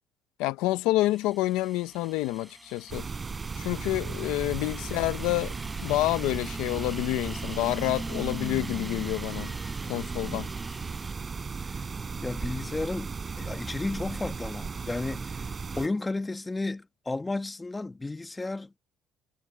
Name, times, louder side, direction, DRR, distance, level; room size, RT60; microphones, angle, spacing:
voice 1, 0.4-3.1 3.6-5.5 5.8-9.5 9.8-10.5, left 17 dB, 90° left, 0.7 m, -28 dB
sound 1, 1.0-11.1, right 1 dB, 5° right, 4.0 m, -43 dB
sound 2, 2.9-15.9, right 5 dB, 30° right, 4.4 m, -36 dB
voice 2, 12.2-15.3 15.7-18.8, left 2 dB, 15° left, 1.6 m, -33 dB
cardioid pair, 95°, 0 cm